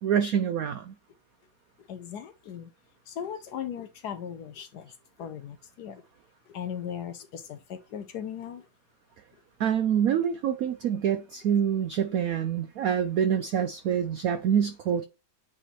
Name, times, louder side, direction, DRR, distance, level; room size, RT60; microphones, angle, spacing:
voice 1, 0.0-0.9 9.6-15.0, right 8 dB, 90° right, 0.7 m, -26 dB
voice 2, 1.9-2.7 3.1-4.9 5.2-6.0 6.5-8.6, left 9 dB, 70° left, 1.0 m, -38 dB
9.1 x 4.2 x 3.1 m
omnidirectional pair, 2.1 m